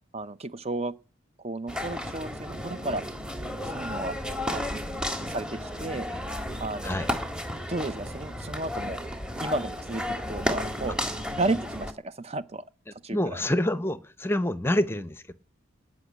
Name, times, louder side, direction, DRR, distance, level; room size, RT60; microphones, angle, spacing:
voice 1, 0.1-1.0 1.4-3.0 3.7-4.2 4.5-4.8 5.3-6.1 6.6-7.1 7.7-9.0 9.4-12.6 13.0-13.4, right 2 dB, 30° right, 0.7 m, -33 dB
sound 1, 1.7-11.9, left 1 dB, 5° right, 1.6 m, -33 dB
voice 2, 13.1-15.3, left 1 dB, 10° left, 0.8 m, -27 dB
18.5 x 6.2 x 9.5 m
head